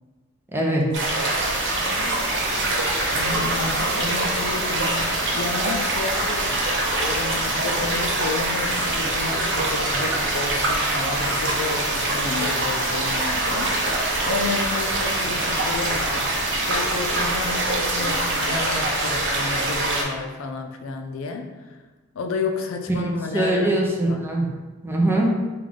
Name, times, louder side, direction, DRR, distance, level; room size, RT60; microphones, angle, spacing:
voice 1, 0.5-0.8 23.0-24.5 24.8-25.3, right 1 dB, 10° right, -2 dB, 0.5 m, -22 dB
sound 1, 0.9-20.0, right 2 dB, 60° right, 0.6 m, -24 dB
sound 2, 1.4-18.5, left 1 dB, 35° left, 0.9 m, -38 dB
voice 2, 3.1-6.7 7.0-21.8 22.1-23.7 24.1-24.2, left 4 dB, 75° left, 5 dB, 0.4 m, -31 dB
3.6 x 2.3 x 3.5 m, 1.2 s
head